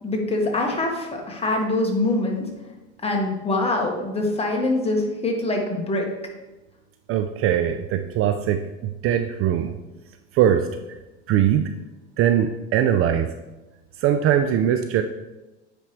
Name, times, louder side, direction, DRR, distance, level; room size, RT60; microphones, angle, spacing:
voice 1, 0.0-2.5 3.0-6.1, left 2 dB, 15° left, 0 dB, 1.6 m, -24 dB
voice 2, 7.1-9.8 10.3-11.0 11.3-11.7 12.2-13.3 14.0-15.0, right 10 dB, 40° right, 8 dB, 0.5 m, -21 dB
9.2 x 5.0 x 3.2 m, 1.1 s
hypercardioid pair, 95°, 35 cm